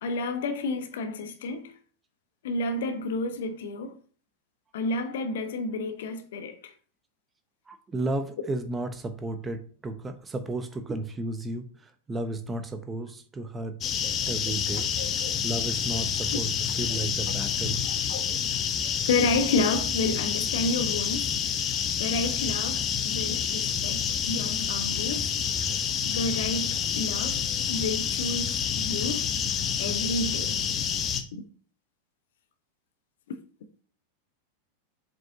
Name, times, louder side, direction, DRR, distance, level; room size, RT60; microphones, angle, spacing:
voice 1, 0.0-1.7 2.4-4.0 4.7-6.7 15.0-15.4 17.8-18.3 19.1-21.3 22.0-25.4 26.0-27.4 27.7-29.3 29.8-30.6 31.3-31.4, left 3 dB, 60° left, 1.1 m, -30 dB
voice 2, 7.7-13.8 14.3-14.9 15.4-16.5 16.8-17.8, right 2 dB, 15° right, 1.0 m, -33 dB
sound 1, 13.8-31.2, left 8 dB, 30° left, 0.9 m, -28 dB
7.5 x 5.3 x 2.8 m
figure-of-eight pair, 90°, 0 cm